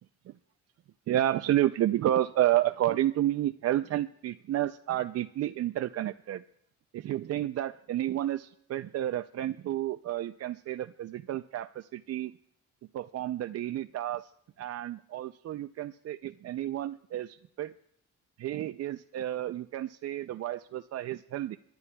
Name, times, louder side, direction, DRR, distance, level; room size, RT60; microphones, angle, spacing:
voice 1, 1.1-6.4 6.9-12.3 12.9-14.3 14.6-17.7 18.4-21.6, right 13 dB, 55° right, 9 dB, 0.4 m, -30 dB
27.5 x 11.5 x 2.3 m, 0.73 s
cardioid pair, 90°, 30 cm